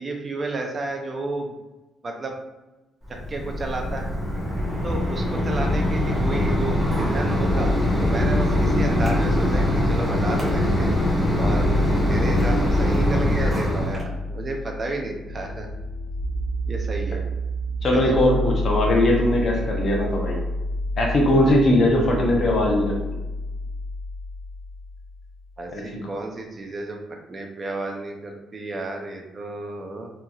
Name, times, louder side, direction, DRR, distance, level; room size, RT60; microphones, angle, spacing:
voice 1, 0.0-1.5 2.0-2.4 3.1-4.1 4.8-7.7 8.0-10.9 11.4-15.7 16.7-17.2 17.8-18.2 25.6-30.1, right 2 dB, 35° right, 2 dB, 0.5 m, -31 dB
Mechanisms, 3.0-14.0, left 1 dB, 5° right, 0.9 m, -23 dB
sound 1, 7.5-25.4, left 1 dB, 90° left, 0.7 m, -29 dB
voice 2, 17.8-20.4 21.0-23.0 25.7-25.8, left 1 dB, 50° left, -1 dB, 0.7 m, -20 dB
2.9 x 2.4 x 2.4 m, 1.1 s
cardioid pair, 90°, 0 cm